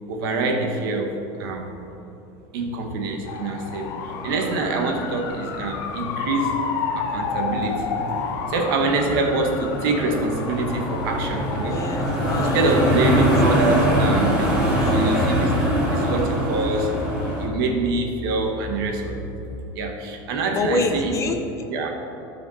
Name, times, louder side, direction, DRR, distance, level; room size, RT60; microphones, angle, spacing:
voice 1, 0.1-1.8 2.5-6.6 6.9-8.0 8.5-11.8 12.4-15.6 15.9-19.4 19.7-21.2 21.7-21.9, right 3 dB, 80° right, 3 dB, 1.3 m, -25 dB
sound 1, 3.3-13.2, left 6 dB, 75° left, 0.8 m, -31 dB
sound 2, 4.0-17.5, equal, 5° right, 2.1 m, -24 dB
voice 2, 11.7-12.6 13.2-13.3 14.6-15.0 20.5-21.6, left 3 dB, 25° left, 5 dB, 0.7 m, -27 dB
sound 3, 14.1-19.6, equal, 45° left, 1.3 m, -37 dB
12.5 x 5.1 x 4.1 m, 2.9 s
supercardioid pair, 145°, 12 cm